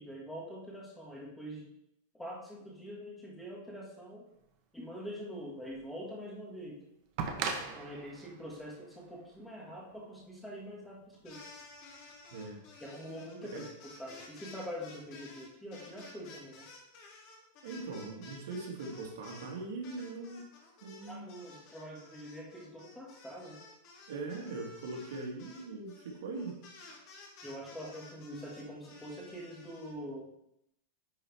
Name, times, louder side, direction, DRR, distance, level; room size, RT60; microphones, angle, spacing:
voice 1, 0.0-1.7 2.1-4.3 4.7-6.8 7.7-11.4 12.8-16.7 21.1-23.6 27.4-30.3, equal, 5° left, -3 dB, 1.7 m, -44 dB
sound 1, 5.7-5.8 7.2-10.0 11.2-11.3, right 5 dB, 45° right, 1.0 m, -39 dB
sound 2, 11.1-19.5 19.8-29.9, left 3 dB, 45° left, 2.3 m, -53 dB
voice 2, 12.3-12.6 13.5-13.7 17.6-20.4 20.8-21.3 24.1-26.7, right 3 dB, 75° right, 2 dB, 1.7 m, -41 dB
10.5 x 4.3 x 3.5 m, 0.81 s
supercardioid pair, 150°, 0 cm